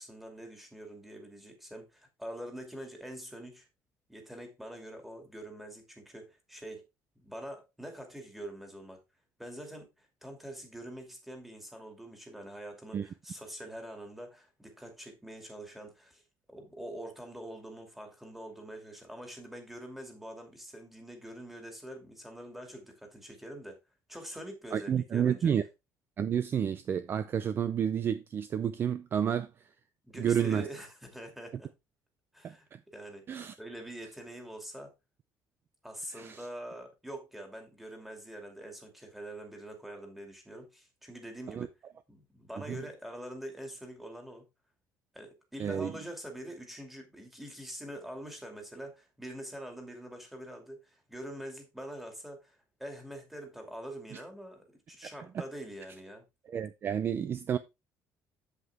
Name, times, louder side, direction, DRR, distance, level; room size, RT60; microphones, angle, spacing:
voice 1, 0.0-3.7 4.1-6.9 7.2-9.0 9.4-16.2 16.5-23.8 24.1-25.5 30.0-31.7 32.3-32.7 32.9-34.9 35.8-41.7 42.1-44.5 45.1-56.3, right 1 dB, 5° right, 2.5 m, -45 dB
voice 2, 24.7-25.6 26.2-29.5 30.1-30.7 32.4-32.8 33.3-33.5 36.2-36.5 41.5-41.7 42.7-42.8 45.6-45.9 54.1-54.2 56.5-57.6, right 8 dB, 35° right, 0.5 m, -30 dB
8.2 x 7.9 x 3.5 m
cardioid pair, 165°, 7 cm